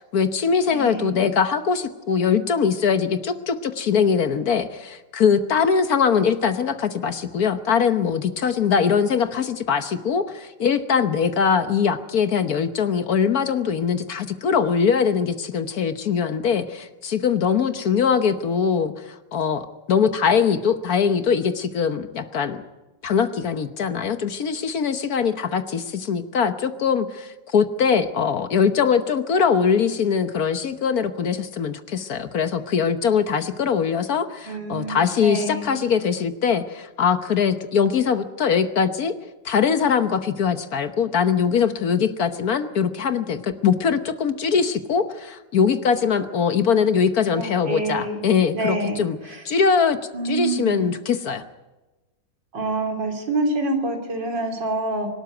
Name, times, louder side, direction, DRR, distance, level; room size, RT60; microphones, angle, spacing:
voice 1, 0.1-18.9 19.3-22.6 23.0-39.1 39.4-49.2 49.4-50.0 50.2-51.4, left 6 dB, 60° left, 10 dB, 1.4 m, -22 dB
voice 2, 0.7-1.2 34.4-35.8 47.3-49.4 50.1-51.0 52.5-55.1, right 2 dB, 75° right, 3 dB, 3.9 m, -27 dB
24.5 x 12.5 x 9.3 m, 1.1 s
omnidirectional pair, 2.0 m